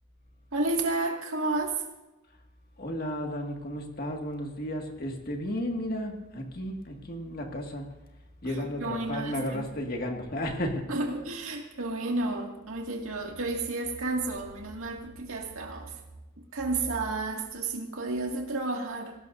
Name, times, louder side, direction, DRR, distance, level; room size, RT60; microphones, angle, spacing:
voice 1, 0.5-1.8 8.4-9.6 10.9-15.9 16.4-19.1, right 2 dB, 70° right, 1 dB, 2.1 m, -31 dB
voice 2, 2.8-8.0 8.4-10.9, equal, 45° left, 1 dB, 1.9 m, -33 dB
20.0 x 17.0 x 2.6 m, 1.0 s
head